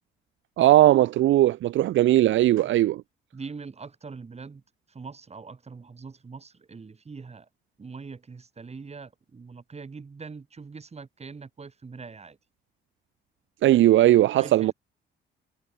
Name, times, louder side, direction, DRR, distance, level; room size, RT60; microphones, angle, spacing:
voice 1, 0.6-3.0 13.6-14.7, right 14 dB, 75° right, 0.7 m, -19 dB
voice 2, 3.3-4.6 4.9-7.5 7.8-12.4 14.4-14.7, right 4 dB, 30° right, 7.1 m, -42 dB
cardioid pair, 90°, 20 cm